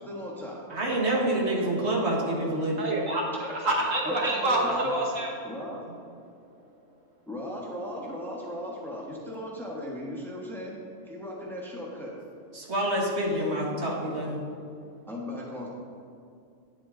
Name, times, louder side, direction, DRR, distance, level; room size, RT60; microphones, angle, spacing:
voice 1, 0.0-0.6 1.0-1.3 3.4-3.7 4.0-4.9 5.4-5.8 7.3-10.8 11.0-12.1 15.1-15.7, left 1 dB, ahead, -3 dB, 1.3 m, -37 dB
voice 2, 0.7-3.0 12.5-14.4, right 1 dB, 55° right, -2 dB, 1.8 m, -27 dB
voice 3, 2.8-3.2 3.6-5.3, right 1 dB, 70° right, -1 dB, 1.7 m, -26 dB
10.0 x 8.1 x 3.8 m, 2.4 s
omnidirectional pair, 1.4 m